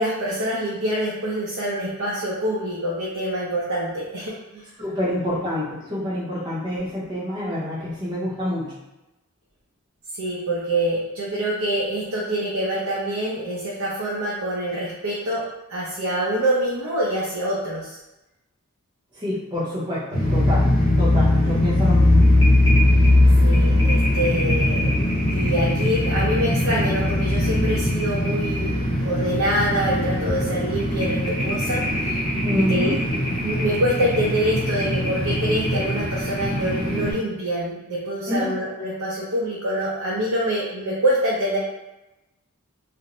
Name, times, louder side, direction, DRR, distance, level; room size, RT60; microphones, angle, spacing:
voice 1, 0.0-4.6 10.2-15.4 15.7-18.0 23.4-24.9 25.3-32.2 32.5-41.6, right 1 dB, 85° right, -5 dB, 0.5 m, -25 dB
voice 2, 4.8-8.8 19.1-20.7 21.0-22.2 32.4-33.0 38.3-38.5, left 1 dB, 20° right, -6 dB, 0.6 m, -27 dB
sound 1, 20.1-37.1, left 1 dB, 75° left, 0.8 m, -20 dB
2.5 x 2.0 x 2.9 m, 0.99 s
head